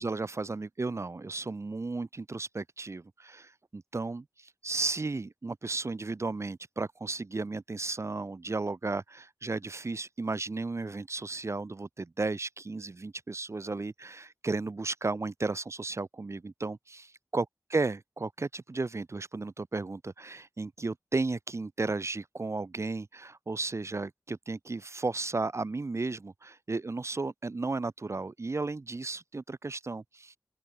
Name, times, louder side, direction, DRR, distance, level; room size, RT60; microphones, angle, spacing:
voice 1, 0.0-17.0 17.3-17.4 17.7-30.4, right 3 dB, 55° right, 1.5 m, -34 dB
open air
wide cardioid pair, 75°, 6 cm